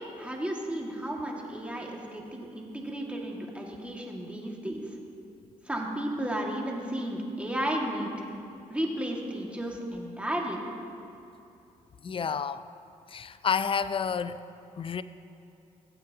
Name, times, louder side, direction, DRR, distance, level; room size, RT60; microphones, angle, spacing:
voice 1, 0.2-4.8 5.7-8.3 8.7-10.6, right 1 dB, 10° right, -1 dB, 2.0 m, -33 dB
voice 2, 12.0-12.7 13.1-14.4 14.8-15.0, left 6 dB, 40° left, 13 dB, 0.5 m, -30 dB
16.5 x 8.5 x 2.9 m, 2.8 s
supercardioid pair, 60°, 14 cm